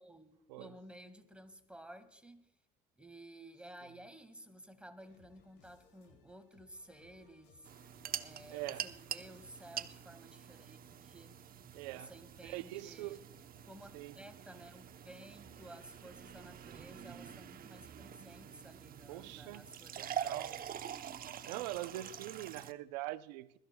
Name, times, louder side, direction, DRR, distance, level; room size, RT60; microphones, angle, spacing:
voice 1, 0.0-2.5 3.0-7.7 8.2-11.4 11.9-13.2 13.6-20.6, right 1 dB, 5° right, 1.8 m, -54 dB
sound 1, 5.0-10.0, left 4 dB, 65° left, 4.4 m, -67 dB
sound 2, 7.6-22.7, right 9 dB, 45° right, 0.9 m, -46 dB
voice 2, 8.5-8.9 11.7-12.1 12.4-13.2 13.9-14.1 19.1-19.7 20.0-20.6 21.4-23.6, right 16 dB, 85° right, 0.7 m, -43 dB
22.0 x 14.0 x 2.3 m
supercardioid pair, 80°, 21 cm